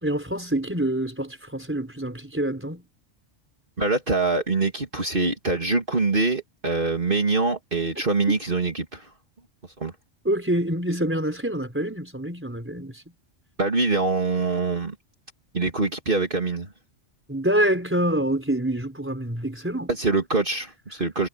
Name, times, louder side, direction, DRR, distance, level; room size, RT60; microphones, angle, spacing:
voice 1, 0.0-2.8 10.2-13.0 17.3-19.9, right 1 dB, 10° right, 4.3 m, -26 dB
voice 2, 3.8-9.1 9.8-9.9 13.6-14.9 15.5-16.7 19.9-21.3, right 3 dB, 45° right, 2.6 m, -24 dB
omnidirectional pair, 1.3 m